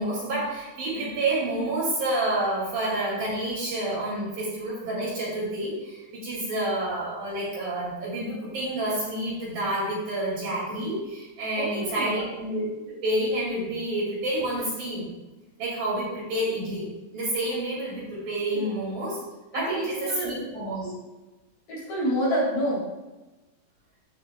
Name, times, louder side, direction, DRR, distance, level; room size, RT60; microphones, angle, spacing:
voice 1, 0.0-15.1 15.6-19.2 19.5-20.9, right 1 dB, 55° right, -6 dB, 3.7 m, -29 dB
voice 2, 11.6-12.3 18.5-18.8 19.7-20.4 21.7-22.8, equal, 50° left, -7 dB, 4.2 m, -28 dB
13.5 x 6.5 x 2.2 m, 1.1 s
omnidirectional pair, 5.3 m